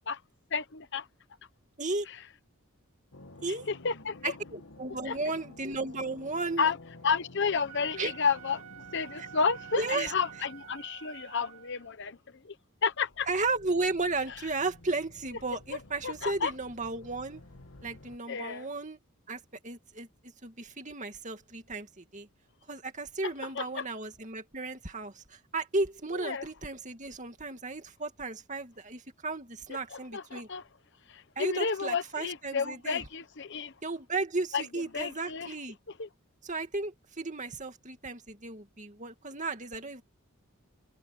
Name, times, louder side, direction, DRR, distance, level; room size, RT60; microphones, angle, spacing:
voice 1, 0.5-1.1 3.7-4.3 5.1-5.2 6.6-6.8 7.0-8.6 8.9-12.6 12.8-13.3 16.0-16.5 18.3-18.7 23.2-23.8 26.1-26.4 29.7-30.6 31.1-33.7 34.5-34.6 34.9-35.5 36.0-36.1, left 5 dB, 55° left, 1.0 m, -31 dB
sound 1, 3.1-10.9 12.9-18.2, left 2 dB, 70° left, 2.4 m, -52 dB
voice 2, 4.2-6.7 8.0-8.1 9.2-9.3 9.8-10.1 13.3-17.4 17.8-19.0 19.3-20.1 20.4-22.3 22.7-30.5 31.4-33.0 33.8-35.8 36.4-40.0, right 3 dB, 35° right, 2.4 m, -34 dB
Wind instrument woodwind instrument, 7.6-12.0, right 11 dB, 80° right, 2.7 m, -48 dB
head